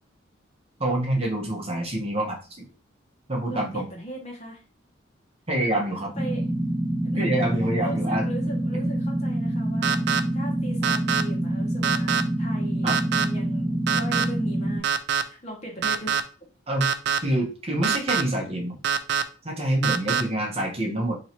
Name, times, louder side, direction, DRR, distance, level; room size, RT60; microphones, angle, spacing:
voice 1, 0.8-2.7 3.3-3.8 5.5-6.1 7.2-8.3 8.8-8.9 12.8-13.0 16.7-16.9 17.2-18.8 19.4-21.1, right 1 dB, 30° right, 0 dB, 0.9 m, -26 dB
voice 2, 3.5-4.6 6.2-6.4 7.0-14.9 15.2-16.2 20.1-20.4, right 1 dB, 35° left, 0 dB, 1.1 m, -39 dB
sound 1, 6.1-14.8, right 1 dB, 10° left, 0.9 m, -26 dB
sound 2, 9.8-10.2 10.8-11.2 11.8-12.2 12.9-13.2 13.9-14.2 14.8-15.2 15.8-16.2 16.8-17.2 17.8-18.2 18.8-19.2 19.8-20.2, right 7 dB, 60° right, 0.4 m, -23 dB
3.0 x 2.7 x 4.3 m, 0.34 s
head